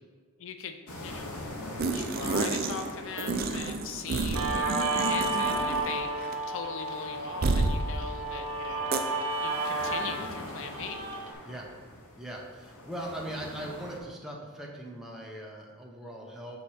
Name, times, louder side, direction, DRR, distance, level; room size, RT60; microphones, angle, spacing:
voice 1, 0.4-1.4 1.7-8.9 9.4-11.0, left 6 dB, 60° left, 7 dB, 0.5 m, -40 dB
sound 1, 0.9-14.0, left 1 dB, 85° left, 1.0 m, -44 dB
sound 2, 1.8-2.9 3.2-6.0 6.2-6.4 7.4-7.8 8.9-9.0, right 3 dB, 45° right, 0.4 m, -30 dB
Guitar, 4.3-11.3, right 2 dB, 80° right, 1.3 m, -32 dB
voice 2, 12.2-16.6, right 1 dB, ahead, -2 dB, 0.7 m, -40 dB
6.5 x 4.1 x 4.3 m, 1.5 s
head